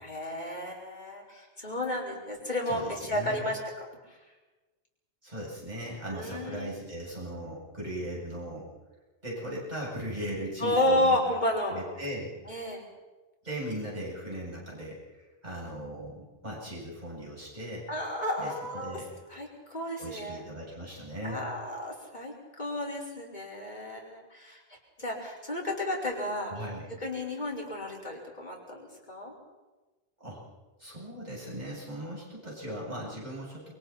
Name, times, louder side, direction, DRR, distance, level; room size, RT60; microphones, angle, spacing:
voice 1, 0.0-3.6 6.1-6.7 10.6-11.8 12.5-12.8 17.9-19.0 19.3-20.4 21.2-26.5 27.0-28.8 29.1-29.3, left 1 dB, 45° left, -3 dB, 5.2 m, -32 dB
voice 2, 2.7-3.5 5.2-8.7 9.2-11.2 11.7-12.3 13.4-17.9 18.4-19.1 20.0-21.4 26.5-26.9 30.2-30.4 30.8-33.7, equal, 45° right, -5 dB, 8.1 m, -38 dB
29.5 x 23.5 x 4.4 m, 1.2 s
omnidirectional pair, 1.0 m